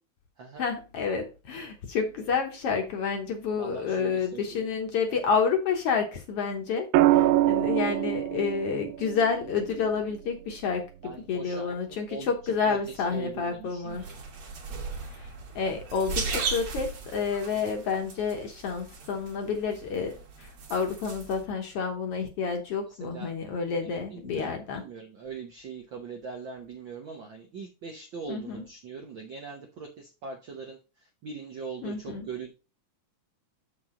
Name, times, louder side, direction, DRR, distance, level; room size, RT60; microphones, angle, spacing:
voice 1, 0.6-14.0 15.1-24.8 28.3-28.6 31.8-32.3, left 5 dB, 60° left, 4 dB, 1.8 m, -29 dB
voice 2, 3.6-4.7 11.0-14.2 22.9-23.3 23.8-32.5, right 5 dB, 65° right, 2 dB, 1.1 m, -41 dB
sound 1, 6.9-11.1 12.8-13.1, right 14 dB, 85° right, 2.0 m, -26 dB
sound 2, 13.9-21.4, right 4 dB, 50° right, 2.2 m, -37 dB
7.0 x 6.0 x 3.8 m, 0.31 s
omnidirectional pair, 3.5 m